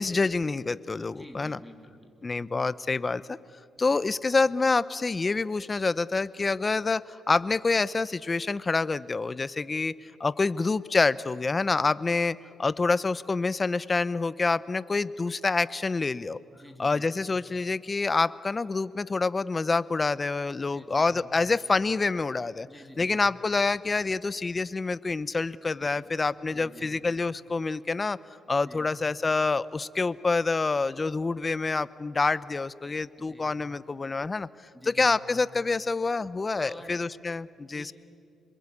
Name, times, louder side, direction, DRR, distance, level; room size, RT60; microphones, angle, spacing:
voice 1, 0.0-1.6 2.2-3.4 3.8-9.9 10.2-16.4 16.8-22.7 23.0-28.2 28.5-34.5 34.9-37.9, left 3 dB, 25° left, 18 dB, 0.7 m, -27 dB
voice 2, 1.1-2.3 3.8-4.0 16.5-17.1 20.6-21.3 22.7-23.2 25.7-26.2 26.5-27.0 28.6-28.9 33.2-33.6 34.7-35.2 36.6-37.1 37.7-37.9, left 1 dB, ahead, 4 dB, 3.1 m, -49 dB
27.5 x 21.5 x 8.5 m, 2.5 s
cardioid pair, 90°, 0 cm